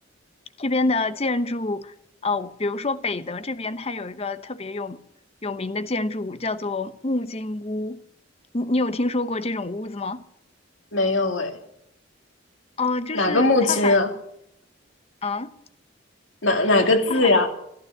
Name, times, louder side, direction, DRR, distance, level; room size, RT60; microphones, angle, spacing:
voice 1, 0.6-1.9 2.2-5.0 5.4-8.0 8.5-10.2 12.8-14.0 15.2-15.5 17.1-17.3, left 2 dB, 30° left, 0.8 m, -27 dB
voice 2, 10.9-11.5 13.1-14.1 16.4-17.5, left 2 dB, 80° left, 2.6 m, -19 dB
14.5 x 12.5 x 6.7 m
head